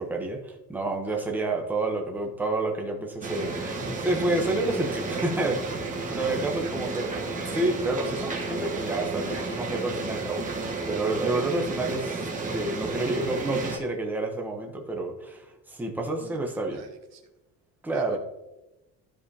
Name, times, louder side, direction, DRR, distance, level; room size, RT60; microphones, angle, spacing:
voice 1, 0.0-7.1 7.5-16.8 17.8-18.2, right 2 dB, 5° right, 1 dB, 0.9 m, -29 dB
voice 2, 1.0-1.4 3.8-4.1 6.4-7.1 16.1-17.2 17.9-18.2, right 2 dB, 50° right, 3 dB, 1.4 m, -47 dB
sound 1, 3.2-13.8, right 3 dB, 20° right, 1.2 m, -32 dB
13.5 x 5.0 x 2.8 m, 0.98 s
cardioid pair, 175°, 35 cm